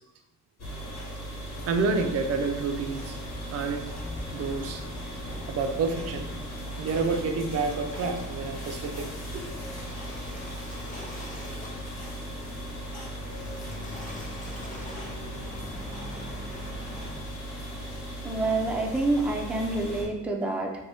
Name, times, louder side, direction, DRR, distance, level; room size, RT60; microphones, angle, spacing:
sound 1, 0.6-20.0, equal, 60° left, 1.0 m, -38 dB
Waves surf, 1.5-17.1, left 1 dB, 25° left, 0.9 m, -43 dB
voice 1, 1.7-3.2 3.5-3.9 4.3-4.8 5.5-6.3 6.8-9.4, right 4 dB, 55° right, 5 dB, 0.5 m, -29 dB
voice 2, 18.2-20.8, right 2 dB, 5° right, 0 dB, 0.4 m, -27 dB
2.7 x 2.6 x 3.4 m, 0.92 s
cardioid pair, 90°, 30 cm